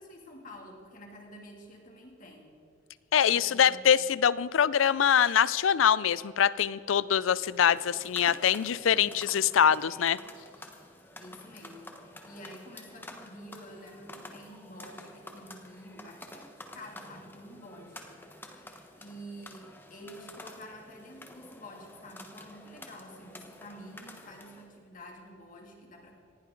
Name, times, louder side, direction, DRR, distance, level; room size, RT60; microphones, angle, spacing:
voice 1, 0.0-2.6 3.3-4.1 8.9-9.4 11.2-26.2, equal, 40° left, 1 dB, 2.6 m, -49 dB
voice 2, 3.1-10.2, left 8 dB, 85° left, 19 dB, 0.4 m, -24 dB
sound 1, 7.4-24.7, left 1 dB, 10° left, 1.2 m, -49 dB
19.0 x 16.0 x 3.9 m, 2.6 s
head